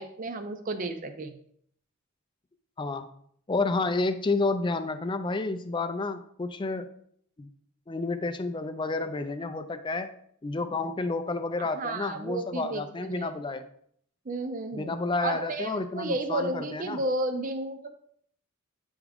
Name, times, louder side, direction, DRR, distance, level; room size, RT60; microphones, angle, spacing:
voice 1, 0.0-1.4 11.6-13.3 14.3-17.9, right 2 dB, 35° right, 7 dB, 0.5 m, -32 dB
voice 2, 2.8-3.1 3.5-6.9 7.4-7.5 7.9-10.2 10.4-13.7 14.7-17.0, left 3 dB, 20° left, 10 dB, 0.4 m, -30 dB
9.1 x 3.6 x 3.5 m, 0.66 s
head